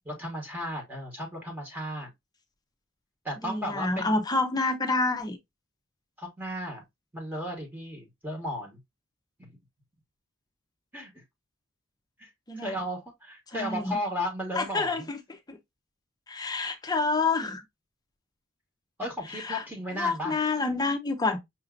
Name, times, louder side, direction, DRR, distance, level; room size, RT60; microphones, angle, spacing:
voice 1, 0.1-2.1 3.2-4.2 6.2-6.8 7.1-8.8 9.4-9.6 10.9-11.2 12.2-12.3 12.5-15.1 19.0-20.4, equal, 10° right, 1.2 m, -35 dB
voice 2, 3.4-5.4 12.5-12.7 13.5-14.0 14.6-15.2 15.5-15.6 16.3-17.6 19.3-19.6 20.0-21.4, left 3 dB, 20° left, 0.6 m, -28 dB
5.8 x 2.7 x 2.4 m
head